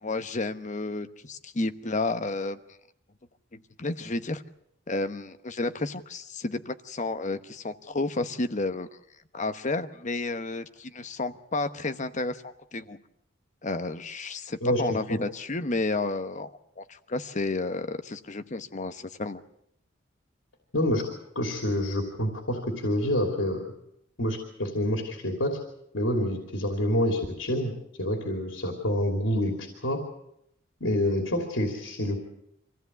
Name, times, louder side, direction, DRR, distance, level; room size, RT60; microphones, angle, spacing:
voice 1, 0.0-2.6 3.5-4.4 4.9-8.9 9.3-13.0 13.6-16.5 16.8-19.4, left 2 dB, 40° left, 10 dB, 1.0 m, -31 dB
voice 2, 20.7-21.1 21.3-23.6 24.2-25.6 25.9-27.7 28.0-30.0 30.8-32.2, left 1 dB, 90° left, 2 dB, 3.0 m, -27 dB
25.0 x 16.0 x 8.2 m, 0.77 s
head